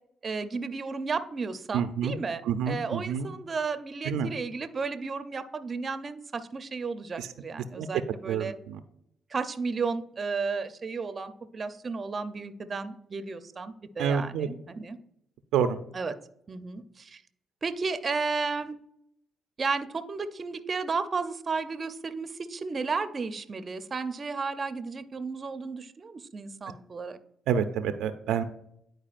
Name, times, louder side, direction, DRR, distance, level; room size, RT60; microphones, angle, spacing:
voice 1, 0.2-8.5 9.3-15.0 15.9-16.1 16.5-17.2 17.6-18.8 19.6-27.2, right 4 dB, 35° right, 10 dB, 0.5 m, -33 dB
voice 2, 1.7-2.2 2.4-3.3 4.0-4.3 7.2-7.3 7.8-7.9 8.3-8.8 14.0-14.5 15.5-15.8 27.5-28.4, right 7 dB, 90° right, 9 dB, 0.4 m, -28 dB
10.5 x 4.6 x 2.5 m, 0.74 s
cardioid pair, 90°, 0 cm